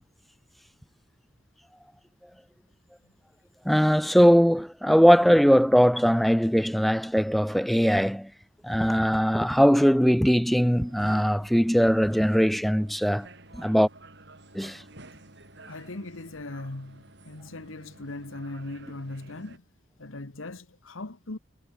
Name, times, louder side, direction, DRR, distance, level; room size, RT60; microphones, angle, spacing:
voice 1, 3.7-8.3 8.6-13.3 13.5-13.9 14.5-14.8, equal, ahead, 0.4 m, -20 dB
sound 1, 10.4-19.6, right 2 dB, 60° right, 6.8 m, -50 dB
voice 2, 15.7-19.6 20.0-21.4, left 2 dB, 85° left, 1.6 m, -39 dB
head